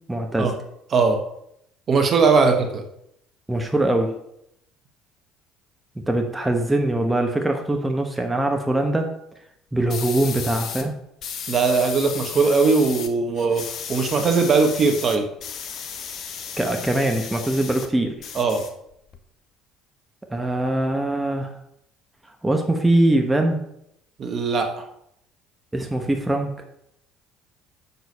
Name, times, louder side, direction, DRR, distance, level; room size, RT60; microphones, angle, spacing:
voice 1, 0.1-0.6 3.5-4.2 6.1-9.1 9.7-11.0 16.6-18.2 20.3-21.5 22.4-23.6 25.7-26.6, right 1 dB, 10° right, 4 dB, 1.0 m, -22 dB
voice 2, 1.9-2.8 11.5-15.3 18.3-18.6 24.2-24.9, right 4 dB, 45° right, 5 dB, 1.3 m, -20 dB
sound 1, 9.9-10.9 11.2-13.1 13.4-17.9 18.2-19.2, left 7 dB, 55° left, 0.9 m, -34 dB
7.1 x 6.1 x 4.2 m, 0.76 s
hypercardioid pair, 60°, 0 cm